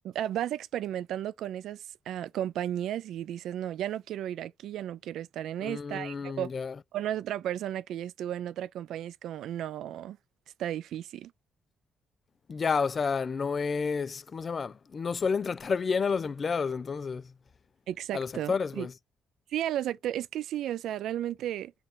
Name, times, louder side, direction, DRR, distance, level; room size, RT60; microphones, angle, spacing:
voice 1, 0.0-6.5 6.9-10.2 10.6-11.3 17.9-18.9 19.5-21.7, right 11 dB, 80° right, 0.3 m, -34 dB
voice 2, 5.6-6.8 12.5-17.3 18.1-18.9, left 5 dB, 40° left, 0.4 m, -30 dB
5.7 x 2.4 x 3.6 m
cardioid pair, 90°, 0 cm